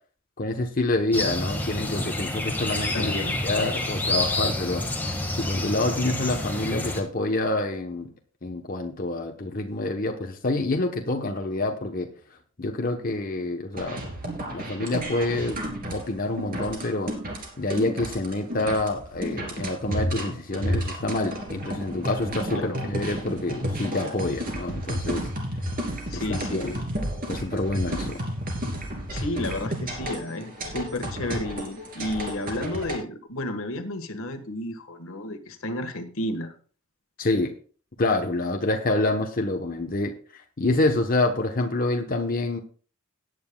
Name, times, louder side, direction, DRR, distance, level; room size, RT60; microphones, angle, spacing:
voice 1, 0.4-3.1 3.4-8.1 8.4-12.1 12.6-14.0 14.5-15.6 15.9-17.1 17.6-25.3 26.1-26.7 27.3-28.2 37.2-37.5 38.0-42.6, left 2 dB, 40° left, 3 dB, 1.0 m, -27 dB
sound 1, 1.1-7.0, left 1 dB, 10° left, 1.7 m, -28 dB
voice 2, 2.9-3.4 22.5-22.8 26.1-26.8 29.1-36.5, left 1 dB, 75° left, 7 dB, 1.6 m, -32 dB
sound 2, 13.7-33.0, equal, 40° right, 3.0 m, -32 dB
18.0 x 9.5 x 2.3 m, 0.40 s
head